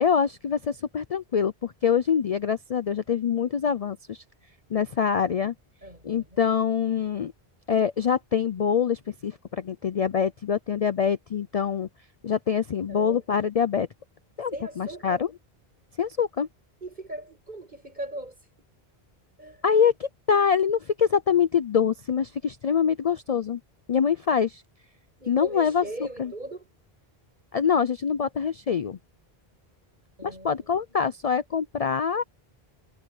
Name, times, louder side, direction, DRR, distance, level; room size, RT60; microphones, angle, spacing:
voice 1, 0.0-4.2 4.7-5.5 6.0-7.3 7.7-11.9 12.2-13.9 14.4-15.3 16.0-16.5 19.6-23.6 23.9-24.6 25.3-25.8 26.2-26.3 27.5-29.0 30.2-32.2, left 7 dB, 45° left, 0.5 m, -25 dB
voice 2, 5.8-6.4 12.9-13.2 14.5-15.3 16.8-18.7 19.4-19.6 25.2-26.6 30.2-30.7, right 1 dB, 45° right, 7.9 m, -39 dB
omnidirectional pair, 1.1 m